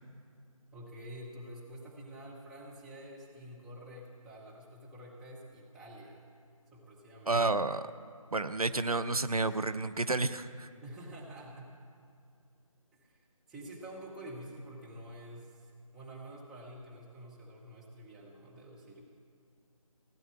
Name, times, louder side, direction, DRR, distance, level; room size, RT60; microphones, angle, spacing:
voice 1, 0.7-6.3 6.7-7.4 10.8-11.7 12.9-19.1, right 1 dB, ahead, -6 dB, 0.9 m, -48 dB
voice 2, 7.3-7.9 8.3-10.7, right 3 dB, 90° right, 13 dB, 0.7 m, -30 dB
16.5 x 9.1 x 8.4 m, 2.3 s
figure-of-eight pair, 155°, 18 cm